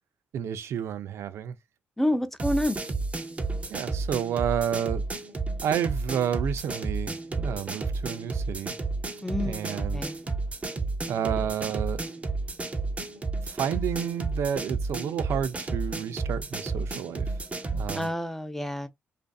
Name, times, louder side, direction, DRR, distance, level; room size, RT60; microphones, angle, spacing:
voice 1, 0.3-1.5 3.7-5.0 5.6-8.7 9.3-10.0 11.1-12.0 13.4-17.3 17.7-18.1, right 9 dB, 75° right, 0.4 m, -30 dB
voice 2, 2.0-2.8 9.2-10.2 17.9-18.9, left 1 dB, 5° left, 0.6 m, -28 dB
sound 1, 2.4-18.1, right 3 dB, 30° right, 0.7 m, -32 dB
2.5 x 2.5 x 2.3 m
cardioid pair, 70°, 5 cm